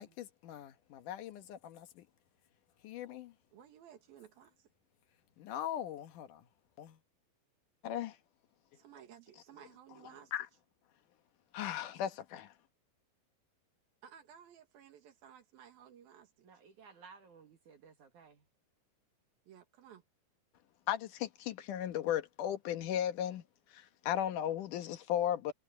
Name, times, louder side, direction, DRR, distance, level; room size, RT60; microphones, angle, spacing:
voice 1, 0.0-2.1 2.8-3.3 5.4-6.4 6.8-7.0 7.8-8.2 10.3-10.5 11.5-12.5 20.9-23.4 23.7-25.5, left 10 dB, 65° left, 2.7 m, -37 dB
voice 2, 3.5-4.7 8.7-10.3 14.0-16.5 19.5-20.0, right 9 dB, 85° right, 3.7 m, -57 dB
voice 3, 16.4-18.5, right 5 dB, 60° right, 3.2 m, -57 dB
omnidirectional pair, 4.1 m